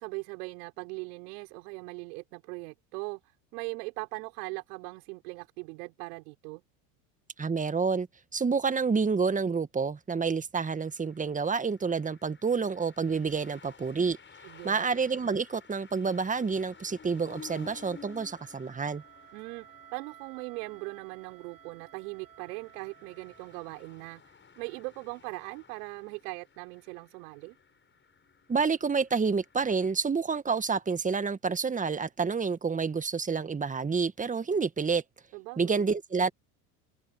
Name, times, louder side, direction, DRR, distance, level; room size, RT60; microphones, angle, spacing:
voice 1, 0.0-6.6 14.4-14.8 19.3-27.6 35.3-35.8, right 29 dB, 70° right, 6.2 m, -40 dB
voice 2, 7.4-8.1 8.3-14.2 14.6-19.0 28.5-35.0 35.6-36.3, right 5 dB, 15° right, 1.6 m, -28 dB
sound 1, 10.7-29.9, left 6 dB, 25° left, 7.5 m, -55 dB
Wind instrument woodwind instrument, 16.3-24.3, right 11 dB, 45° right, 7.9 m, -56 dB
hypercardioid pair, 90°, 49 cm